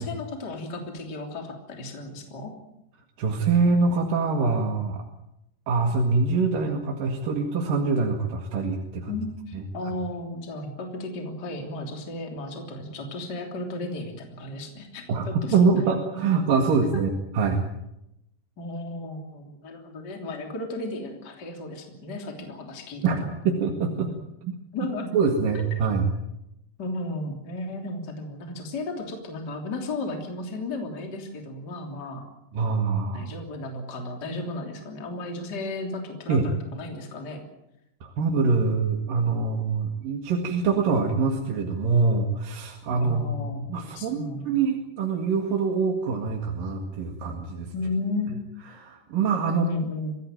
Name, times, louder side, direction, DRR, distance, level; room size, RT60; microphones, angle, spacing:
voice 1, 0.0-2.5 9.1-15.6 16.9-17.0 18.6-23.0 24.7-25.1 26.8-32.3 33.1-37.4 43.0-43.6 43.9-44.5 47.7-48.4 49.5-50.1, left 2 dB, 25° left, 3 dB, 3.3 m, -34 dB
voice 2, 3.2-5.0 5.7-9.1 9.5-9.6 15.1-17.6 23.0-24.1 24.4-24.6 25.1-26.1 32.5-33.3 36.3-36.5 38.0-47.7 48.3-48.4 48.7-49.7, right 4 dB, 65° right, 2 dB, 3.5 m, -24 dB
24.5 x 17.0 x 9.0 m, 0.85 s
omnidirectional pair, 4.4 m